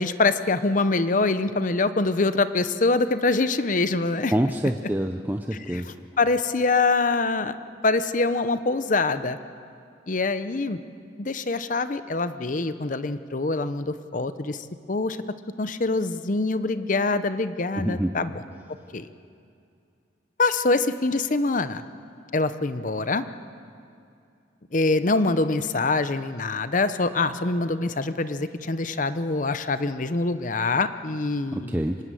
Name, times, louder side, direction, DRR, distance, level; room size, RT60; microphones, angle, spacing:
voice 1, 0.0-4.3 5.7-7.5 7.8-9.4 10.1-10.8 11.2-15.2 15.6-18.4 18.9-19.1 20.4-21.8 22.3-23.2 24.7-31.8, left 3 dB, 45° left, 12 dB, 0.8 m, -24 dB
voice 2, 4.3-5.9 17.8-18.1 31.5-32.0, right 1 dB, 10° right, 5 dB, 0.7 m, -26 dB
25.0 x 19.5 x 7.7 m, 2.5 s
head